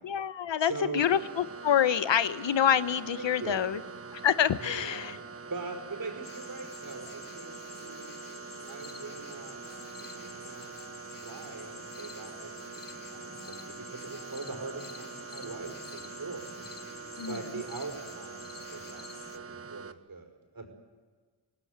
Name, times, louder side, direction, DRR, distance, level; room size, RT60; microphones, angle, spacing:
voice 1, 0.0-3.8 4.1-5.2 17.2-17.4, left 9 dB, 80° left, 14 dB, 1.0 m, -27 dB
voice 2, 0.6-1.0 3.1-3.7 4.6-5.1 5.5-8.1 8.7-9.6 9.9-10.7 11.2-16.6 17.3-20.7, right 4 dB, 50° right, 5 dB, 5.4 m, -42 dB
sound 1, 0.7-19.7, left 2 dB, 15° left, 6.1 m, -59 dB
sound 2, 1.0-19.9, right 5 dB, 30° right, 1.3 m, -44 dB
sound 3, 6.2-19.4, left 5 dB, 50° left, 1.5 m, -49 dB
27.0 x 18.0 x 8.1 m, 1.5 s
wide cardioid pair, 85°, 43 cm